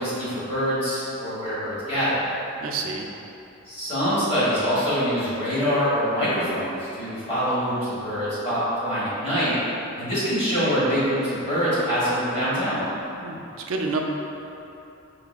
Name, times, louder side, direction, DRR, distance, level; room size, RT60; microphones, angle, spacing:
voice 1, 0.0-2.2 3.6-9.6 9.9-12.8, equal, 25° left, -11 dB, 1.3 m, -24 dB
voice 2, 2.6-3.1 13.2-13.4 13.7-14.0, right 4 dB, 70° right, 1 dB, 0.4 m, -28 dB
4.8 x 3.1 x 2.3 m, 2.9 s
head